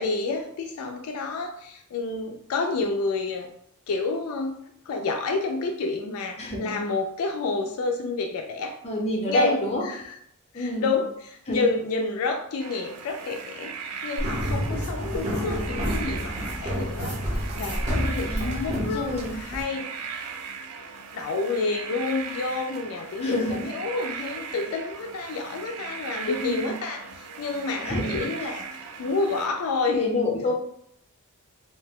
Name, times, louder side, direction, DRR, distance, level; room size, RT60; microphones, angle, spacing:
voice 1, 0.0-3.5 3.9-4.6 4.9-8.8 9.3-10.2 10.5-13.7 14.0-17.2 17.5-20.1 21.1-30.0, left 3 dB, 70° left, 4 dB, 0.3 m, -29 dB
voice 2, 6.4-6.8 8.8-9.8 10.5-10.9 11.5-11.6 18.2-19.3 23.2-23.6 26.3-26.7 27.8-28.3 29.9-30.5, left 1 dB, 30° left, -1 dB, 0.6 m, -27 dB
sound 1, 12.6-29.5, right 6 dB, 85° right, 0.3 m, -38 dB
sound 2, 14.2-19.6, equal, 30° right, 0.7 m, -29 dB
2.7 x 2.1 x 3.5 m, 0.70 s
head